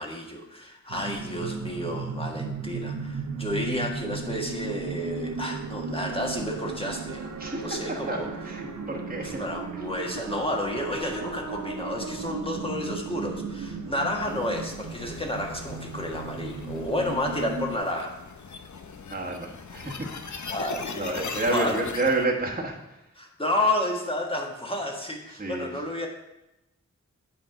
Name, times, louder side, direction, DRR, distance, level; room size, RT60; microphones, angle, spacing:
voice 1, 0.0-7.3 7.6-8.3 9.2-18.1 20.5-21.8 23.2-26.1, left 1 dB, 20° left, 0 dB, 1.5 m, -31 dB
sound 1, 0.9-17.8, right 4 dB, 85° right, 0.7 m, -35 dB
voice 2, 7.4-9.4 9.7-9.9 19.1-20.1 20.9-23.1 25.3-25.8, right 2 dB, 30° right, -3 dB, 1.3 m, -30 dB
sound 2, 14.2-22.2, left 5 dB, 75° left, 0.7 m, -40 dB
8.7 x 5.1 x 4.8 m, 0.92 s
wide cardioid pair, 70°, 29 cm